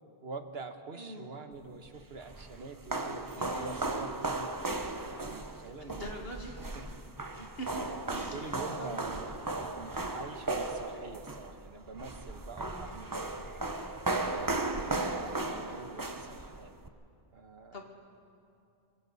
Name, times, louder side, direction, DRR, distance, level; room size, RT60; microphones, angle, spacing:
voice 1, 0.2-4.5 5.1-6.3 6.7-6.9 7.7-13.5 14.1-16.8 17.3-17.8, right 4 dB, 75° right, 6 dB, 1.5 m, -45 dB
voice 2, 1.0-1.3 3.3-3.8 5.8-6.6 7.3-7.7 8.1-9.0 12.6-12.9 17.7-17.9, right 1 dB, 70° left, 1 dB, 2.3 m, -44 dB
sound 1, 1.9-16.9, right 2 dB, 20° right, 0.8 m, -36 dB
25.5 x 25.5 x 4.1 m, 2.6 s
omnidirectional pair, 1.0 m